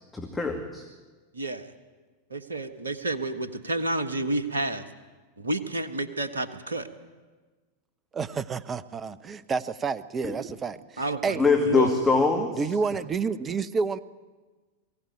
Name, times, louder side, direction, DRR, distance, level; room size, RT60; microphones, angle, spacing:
voice 1, 0.1-0.8 10.2-10.3 11.4-12.6, left 4 dB, 10° left, 1 dB, 2.3 m, -23 dB
voice 2, 1.3-1.7 2.3-4.8 5.4-6.9 11.0-12.0, right 2 dB, 75° right, 10 dB, 1.5 m, -30 dB
voice 3, 8.1-11.5 12.6-14.0, right 5 dB, 20° right, 15 dB, 0.9 m, -29 dB
22.0 x 16.0 x 9.1 m, 1.3 s
figure-of-eight pair, 90°, 0 cm